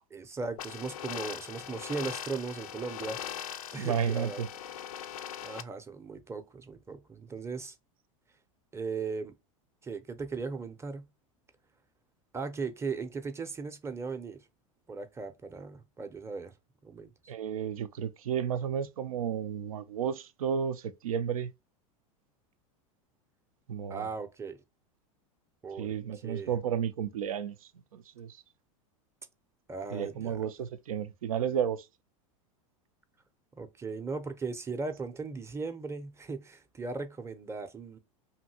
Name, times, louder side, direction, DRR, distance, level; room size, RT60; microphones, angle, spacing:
voice 1, 0.1-3.2 3.7-4.4 5.4-7.8 8.7-9.3 9.8-11.1 12.3-14.4 14.9-16.5 16.8-17.1 23.9-24.6 25.6-26.6 29.7-30.4 33.5-38.0, right 4 dB, 15° right, 0.6 m, -38 dB
sound 1, 0.6-5.6, left 10 dB, 85° left, 0.4 m, -40 dB
voice 2, 3.7-4.5 17.3-21.5 23.7-24.1 25.8-27.6 27.9-28.4 29.9-31.8, right 8 dB, 90° right, 0.4 m, -32 dB
2.8 x 2.6 x 2.7 m
hypercardioid pair, 100°, 18 cm